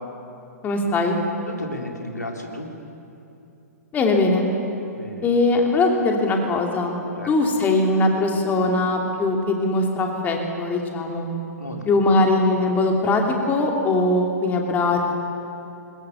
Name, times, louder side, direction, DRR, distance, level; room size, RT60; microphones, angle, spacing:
voice 1, 0.6-1.2 3.9-4.5 5.2-7.0 7.3-11.3 11.9-15.1, left 2 dB, 20° left, 1 dB, 2.8 m, -21 dB
voice 2, 1.5-2.7 4.9-5.3 7.2-7.3 11.6-11.9, left 1 dB, 85° left, 1 dB, 3.0 m, -34 dB
21.5 x 20.5 x 7.2 m, 2.8 s
figure-of-eight pair, 115°, 9 cm